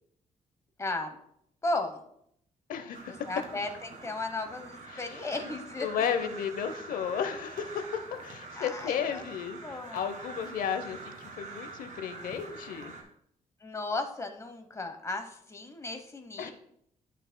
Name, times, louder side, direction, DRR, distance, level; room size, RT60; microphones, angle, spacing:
voice 1, 0.8-1.2 1.6-2.0 3.3-6.1 8.5-9.2 9.6-10.0 13.6-16.5, left 2 dB, 20° left, 6 dB, 1.0 m, -35 dB
voice 2, 2.7-3.3 4.9-12.9 16.4-16.5, left 7 dB, 80° left, 10 dB, 0.8 m, -34 dB
Crow, 2.9-13.0, right 3 dB, 65° right, 2.0 m, -45 dB
12.0 x 6.4 x 2.2 m, 0.70 s
cardioid pair, 125°, 14 cm